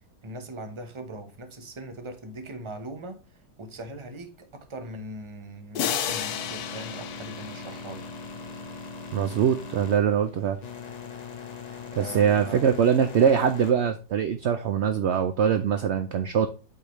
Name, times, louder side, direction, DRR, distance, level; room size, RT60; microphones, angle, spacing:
voice 1, 0.2-3.2 3.6-8.0 11.9-12.6, right 1 dB, 25° right, 0.8 m, -40 dB
sound 1, 5.7-8.4, left 9 dB, 75° left, 1.2 m, -32 dB
sound 2, 6.0-13.7, left 5 dB, 35° left, 0.8 m, -40 dB
voice 2, 9.1-10.6 12.0-16.5, right 8 dB, 65° right, 0.6 m, -23 dB
8.3 x 4.7 x 3.1 m
omnidirectional pair, 1.7 m